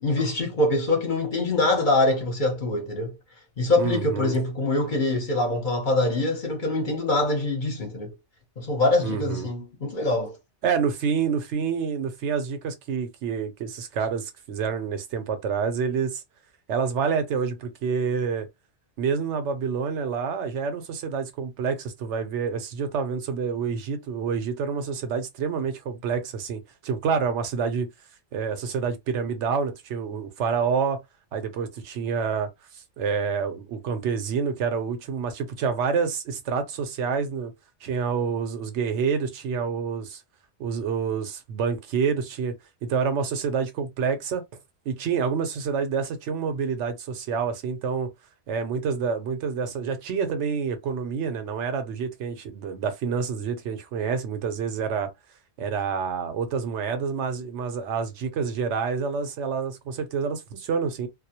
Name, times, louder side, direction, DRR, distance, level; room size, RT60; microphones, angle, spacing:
voice 1, 0.0-3.2 3.6-8.2 8.6-10.4, left 2 dB, 50° left, 0.8 m, -24 dB
voice 2, 3.8-4.3 9.0-9.5 10.6-16.2 16.7-18.5 19.0-27.9 28.3-31.0 31.3-37.5 37.8-40.2 40.6-42.6 42.8-44.4 44.9-48.1 48.5-55.1 55.6-61.1, right 6 dB, 80° right, 0.9 m, -28 dB
2.3 x 2.0 x 2.7 m
omnidirectional pair, 1.2 m